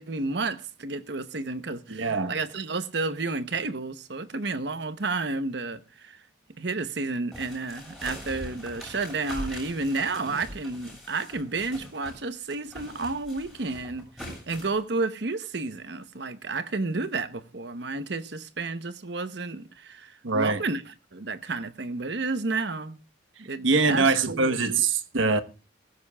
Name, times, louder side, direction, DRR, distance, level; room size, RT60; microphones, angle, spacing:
voice 1, 0.0-6.2 6.6-14.1 14.5-23.0 23.4-24.6, right 3 dB, 60° right, 0.9 m, -31 dB
voice 2, 1.9-2.3 20.2-20.6 23.6-25.4, right 4 dB, 85° right, 1.1 m, -23 dB
sound 1, 7.3-12.2 12.5-14.8, equal, ahead, 6.9 m, -42 dB
17.5 x 15.5 x 2.3 m
head